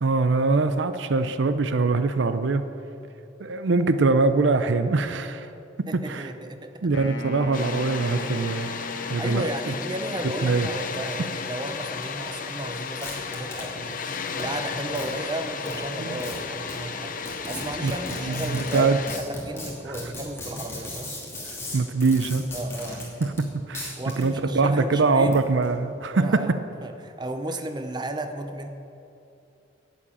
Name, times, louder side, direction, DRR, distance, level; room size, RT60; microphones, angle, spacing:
voice 1, 0.0-2.6 3.4-5.5 5.8-6.3 6.8-8.7 9.1-9.7 10.2-10.7 16.0-16.2 17.8-17.9 18.2-19.0 21.7-22.5 23.2-26.6, right 3 dB, 70° right, 11 dB, 0.5 m, -23 dB
voice 2, 5.9-6.9 9.2-17.2 17.5-21.1 22.5-23.2 24.0-25.5 26.1-26.5 26.8-28.7, right 1 dB, 20° right, 7 dB, 0.7 m, -34 dB
Wind instrument woodwind instrument, 6.9-10.4, left 2 dB, 85° left, 1.3 m, -38 dB
Water, 7.5-19.2, left 5 dB, 45° left, 0.7 m, -34 dB
sound 1, 13.0-13.6 14.4-14.5 14.9-15.1 15.6-15.7 16.2-16.3 16.7-16.8 17.2-23.5 23.7-24.3 25.2-25.7, left 2 dB, 15° left, 2.5 m, -36 dB
11.0 x 7.2 x 8.7 m, 2.7 s
head